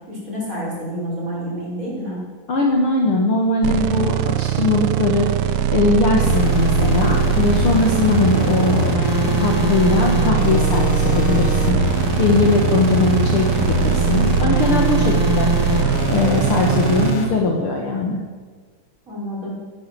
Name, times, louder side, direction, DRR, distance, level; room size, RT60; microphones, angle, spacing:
voice 1, 0.1-2.2 19.1-19.5, equal, 25° right, -6 dB, 6.2 m, -28 dB
voice 2, 2.5-5.3 5.7-8.9 9.2-11.8 12.2-15.5 16.1-18.2, left 3 dB, 50° left, 0 dB, 2.2 m, -20 dB
sound 1, 3.6-17.1, right 10 dB, 75° right, 2.1 m, -21 dB
sound 2, 6.2-17.3, left 4 dB, 80° left, 3.7 m, -23 dB
17.5 x 10.5 x 7.8 m, 1.5 s
omnidirectional pair, 3.7 m